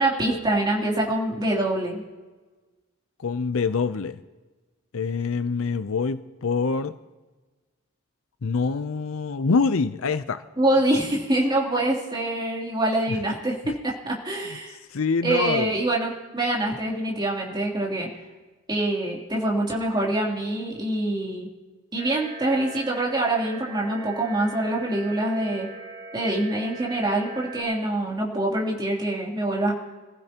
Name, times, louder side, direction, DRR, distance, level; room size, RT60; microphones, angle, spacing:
voice 1, 0.0-2.0 10.6-14.8 15.2-18.1 18.7-21.5 21.9-25.7 26.1-29.7, right 1 dB, 20° right, 3.1 m, -25 dB
voice 2, 3.2-4.2 4.9-6.9 8.4-10.4 13.1-13.2 13.6-13.7 14.5-14.6 14.9-15.7, left 4 dB, 70° left, 0.6 m, -25 dB
sound 1, 22.0-27.6, right 3 dB, 45° right, 5.3 m, -40 dB
26.5 x 15.5 x 2.9 m
head